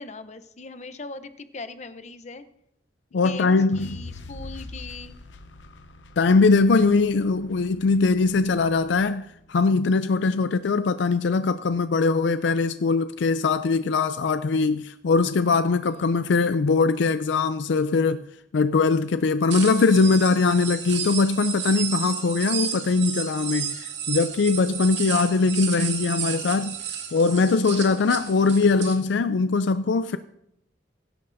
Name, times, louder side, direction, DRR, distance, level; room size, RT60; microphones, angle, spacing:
voice 1, 0.0-2.4 3.1-5.1, left 3 dB, 40° left, 0.7 m, -39 dB
voice 2, 3.1-4.0 6.2-18.2 18.5-23.8 24.1-26.8 27.1-30.2, left 4 dB, 75° left, 0.4 m, -21 dB
sound 1, 3.7-9.9, left 2 dB, 90° left, 0.8 m, -44 dB
sound 2, 19.5-29.0, right 8 dB, 75° right, 2.2 m, -32 dB
22.5 x 11.0 x 2.6 m
head